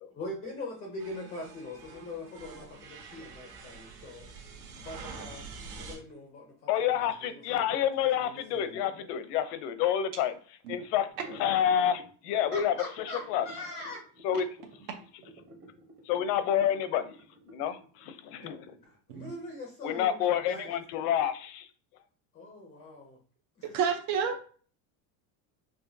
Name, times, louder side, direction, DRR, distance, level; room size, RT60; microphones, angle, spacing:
voice 1, 0.1-4.3 4.8-7.8 8.2-8.8 12.5-14.0 18.8-20.9 22.3-23.2 23.6-23.8, left 2 dB, 15° left, 1 dB, 0.3 m, -42 dB
sound 1, 1.0-6.0, right 4 dB, 60° right, 1.5 m, -46 dB
voice 2, 6.7-10.3 10.7-11.1 11.4-12.7 13.3-13.5 14.2-14.5 16.1-17.2 17.5-18.8 19.8-21.7, left 9 dB, 85° left, 11 dB, 0.7 m, -28 dB
sound 2, 11.1-18.9, equal, 30° right, 0.8 m, -52 dB
voice 3, 23.6-24.4, right 7 dB, 75° right, 3 dB, 0.8 m, -30 dB
4.9 x 2.6 x 2.6 m, 0.43 s
cardioid pair, 160°, 46 cm